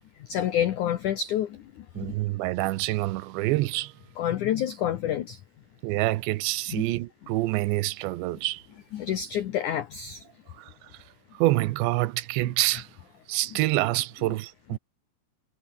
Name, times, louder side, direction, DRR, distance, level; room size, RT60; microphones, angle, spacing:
voice 1, 0.2-1.6 2.0-2.2 4.2-5.4 8.9-10.2, left 10 dB, 70° left, 1.9 m, -28 dB
voice 2, 2.0-4.0 5.8-8.6 10.5-11.0 11.3-12.9 13.3-14.8, right 18 dB, 85° right, 3.1 m, -27 dB
omnidirectional pair, 5.2 m